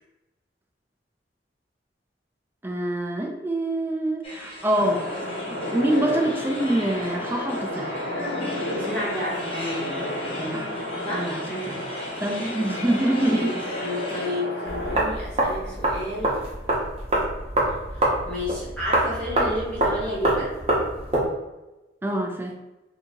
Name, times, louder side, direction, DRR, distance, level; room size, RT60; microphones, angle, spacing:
voice 1, 2.6-5.1 5.5-8.0 10.3-10.7 11.1-11.8 12.2-13.5 22.0-22.6, right 1 dB, 10° right, 2 dB, 0.4 m, -25 dB
sound 1, 4.2-14.3, left 1 dB, 30° left, 0.8 m, -39 dB
sound 2, 4.8-15.0, left 1 dB, 80° left, 1.3 m, -31 dB
voice 2, 8.7-9.6 11.0-11.9 13.3-16.4 17.9-20.5, left 1 dB, 5° left, -8 dB, 1.0 m, -31 dB
sound 3, 14.7-21.3, right 1 dB, 35° right, 0.9 m, -25 dB
2.8 x 2.7 x 3.6 m, 1.0 s
head